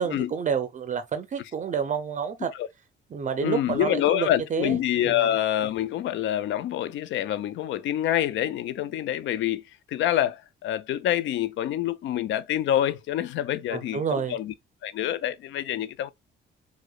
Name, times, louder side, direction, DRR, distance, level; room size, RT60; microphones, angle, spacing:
voice 1, 0.0-2.5 3.1-4.8 5.0-5.3 13.7-14.4, right 6 dB, 40° right, 0.5 m, -29 dB
voice 2, 3.4-9.6 9.9-14.5 14.8-16.1, left 11 dB, 70° left, 0.4 m, -26 dB
4.7 x 2.1 x 2.3 m
cardioid pair, 90°, 20 cm